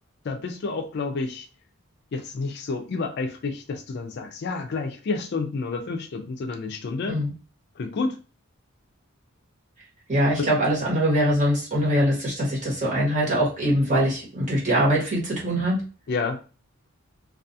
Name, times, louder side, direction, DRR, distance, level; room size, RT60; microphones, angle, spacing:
voice 1, 0.2-1.5 2.1-7.2 7.8-8.2 10.3-10.5 16.1-16.4, left 4 dB, 50° left, 5 dB, 0.4 m, -29 dB
voice 2, 10.1-15.8, equal, 35° right, -5 dB, 1.1 m, -22 dB
2.3 x 2.3 x 2.6 m, 0.35 s
head